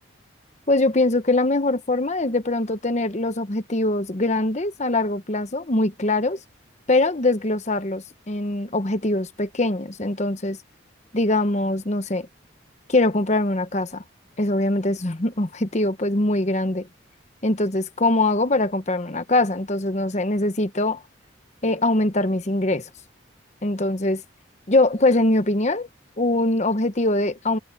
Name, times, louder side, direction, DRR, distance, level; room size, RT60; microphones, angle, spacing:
voice 1, 0.7-6.4 6.9-10.6 11.1-12.3 12.9-14.0 14.4-16.9 17.4-21.0 21.6-22.9 23.6-24.2 24.7-25.9 26.2-27.6, left 2 dB, 35° left, 1.0 m, -22 dB
head